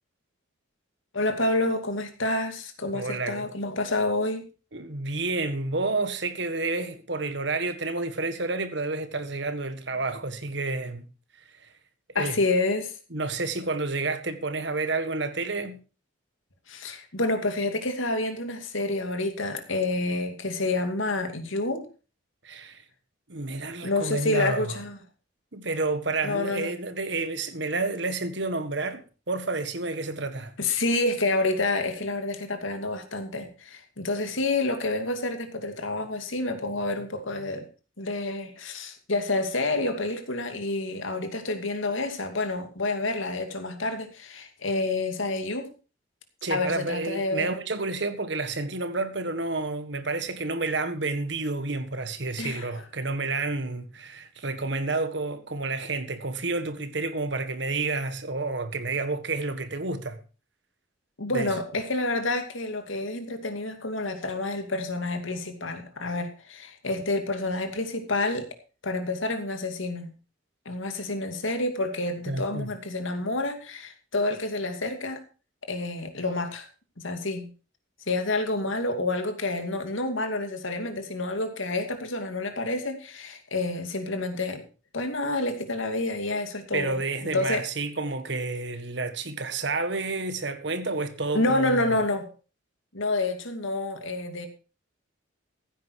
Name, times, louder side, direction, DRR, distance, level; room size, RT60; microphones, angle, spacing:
voice 1, 1.1-4.4 12.1-12.9 16.7-21.8 23.8-25.0 26.2-26.7 30.6-37.7 38.0-45.7 46.5-47.5 52.4-52.7 61.2-68.5 68.8-70.1 70.7-75.2 75.7-76.7 77.0-77.5 78.1-84.6 84.9-87.0 87.2-87.6 91.3-92.3 92.9-94.5, left 2 dB, 80° left, 2.5 m, -28 dB
voice 2, 2.9-3.5 4.7-11.1 11.5-11.7 12.1-12.4 13.1-15.8 22.4-22.8 23.3-24.8 25.5-30.5 46.4-60.2 61.3-61.5 72.3-72.7 86.7-91.8, right 3 dB, 60° right, 1.6 m, -30 dB
15.0 x 9.2 x 4.7 m
head